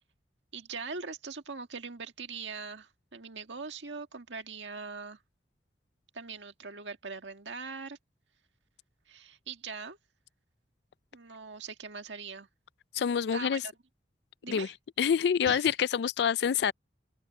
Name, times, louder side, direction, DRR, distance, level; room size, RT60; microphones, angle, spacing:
voice 1, 0.5-5.2 6.1-8.0 9.1-10.0 11.1-12.5 13.3-13.7 14.4-14.7 15.5-15.7, right 4 dB, 90° right, 1.8 m, -41 dB
voice 2, 12.9-13.6 14.5-14.7 15.0-16.7, left 7 dB, 70° left, 0.3 m, -27 dB
open air
head